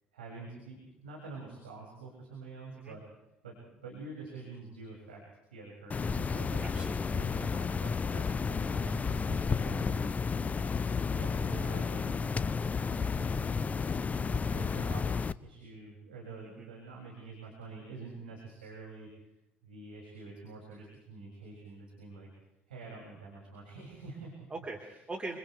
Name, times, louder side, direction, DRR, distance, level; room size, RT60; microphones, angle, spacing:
voice 1, 0.1-3.0 3.4-5.2 5.5-6.6 7.1-10.0 10.4-10.9 11.1-12.4 12.9-19.1 19.6-22.3 22.7-24.5, right 3 dB, 80° right, -3 dB, 7.1 m, -47 dB
sound 1, 5.9-15.3, left 5 dB, 30° left, 0.8 m, -32 dB
voice 2, 6.6-7.3 16.4-16.7 24.5-25.4, right 2 dB, 20° right, 0 dB, 4.5 m, -42 dB
29.0 x 28.5 x 3.5 m, 0.90 s
figure-of-eight pair, 60°, 5 cm